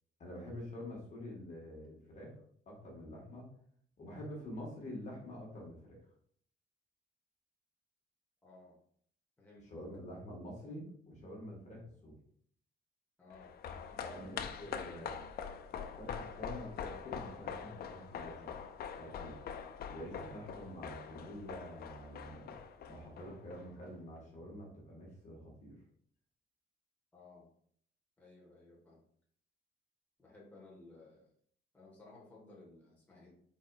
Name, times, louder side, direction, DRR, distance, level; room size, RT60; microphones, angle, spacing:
voice 1, 0.2-2.3 2.7-3.5 4.0-6.0 9.6-12.2 14.1-15.3 15.7-18.5 19.0-19.4 19.9-22.6 22.9-25.8, equal, 40° left, -2 dB, 1.5 m, -47 dB
voice 2, 8.4-8.8 9.4-9.7 13.2-15.1 27.1-27.5 28.2-29.0 30.2-31.3 31.7-33.3, left 2 dB, 10° left, -6 dB, 1.3 m, -58 dB
sound 1, 13.3-23.9 24.2-24.3, left 7 dB, 60° left, 0.4 m, -44 dB
4.6 x 4.2 x 2.4 m, 0.62 s
cardioid pair, 145°, 18 cm